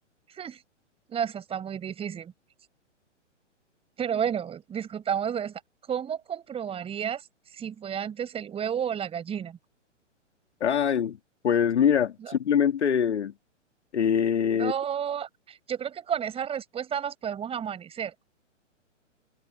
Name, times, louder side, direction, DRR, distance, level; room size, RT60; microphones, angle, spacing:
voice 1, 0.3-0.6 1.1-2.3 4.0-5.6 5.9-7.3 7.5-9.6 12.2-12.3 14.5-18.1, right 8 dB, 15° right, 4.8 m, -31 dB
voice 2, 10.6-11.2 11.4-13.3 13.9-14.7, left 8 dB, 65° left, 2.5 m, -23 dB
figure-of-eight pair, 120°, 37 cm